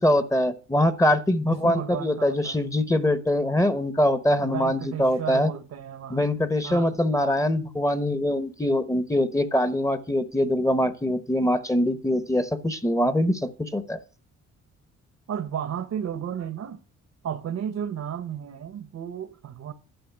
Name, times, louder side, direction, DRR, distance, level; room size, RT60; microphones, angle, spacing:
voice 1, 0.0-5.5 6.1-14.0, left 1 dB, 10° left, 1.0 m, -23 dB
voice 2, 1.4-2.6 4.3-6.3 6.6-7.0 15.3-16.8 17.2-19.7, right 9 dB, 60° right, 1.1 m, -33 dB
11.5 x 5.5 x 6.6 m
cardioid pair, 90°, 30 cm